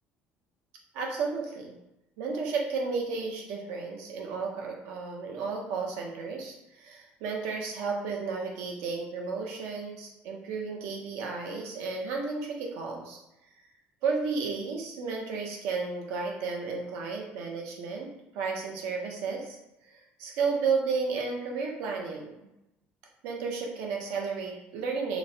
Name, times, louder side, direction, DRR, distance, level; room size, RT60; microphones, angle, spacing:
voice 1, 0.9-1.7 2.2-13.2 14.0-18.1 18.3-19.6 19.9-22.5 23.2-25.2, right 4 dB, 90° right, 0 dB, 0.6 m, -33 dB
2.9 x 2.1 x 2.6 m, 0.90 s
cardioid pair, 160°, 4 cm